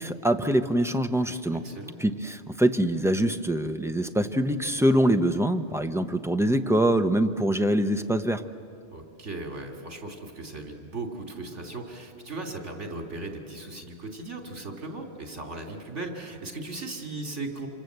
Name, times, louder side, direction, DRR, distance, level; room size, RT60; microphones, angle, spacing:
voice 1, 0.0-1.6 2.0-8.4, right 1 dB, 5° right, 7 dB, 0.6 m, -24 dB
voice 2, 1.6-2.0 8.9-17.7, right 2 dB, 75° right, 3 dB, 3.0 m, -37 dB
27.0 x 26.5 x 8.0 m, 2.6 s
omnidirectional pair, 1.2 m